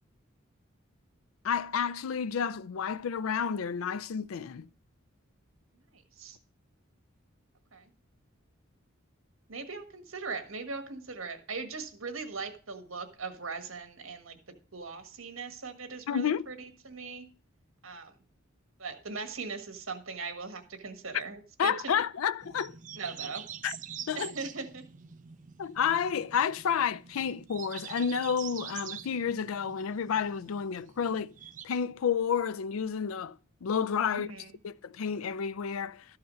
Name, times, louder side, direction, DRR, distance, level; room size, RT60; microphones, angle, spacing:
voice 1, 1.4-4.7 16.1-16.5 21.6-22.7 23.6-23.8 24.1-24.3 25.6-31.3 31.6-33.4 33.6-34.3 34.6-36.0, left 7 dB, 85° left, 0.4 m, -30 dB
voice 2, 5.9-6.4 7.7-7.9 9.5-14.4 14.7-17.3 17.8-18.1 18.8-21.9 23.0-23.5 24.1-24.9 34.1-34.5, right 4 dB, 75° right, 1.5 m, -40 dB
sound 1, 22.4-31.6, right 9 dB, 40° right, 0.4 m, -46 dB
13.0 x 4.8 x 6.2 m
head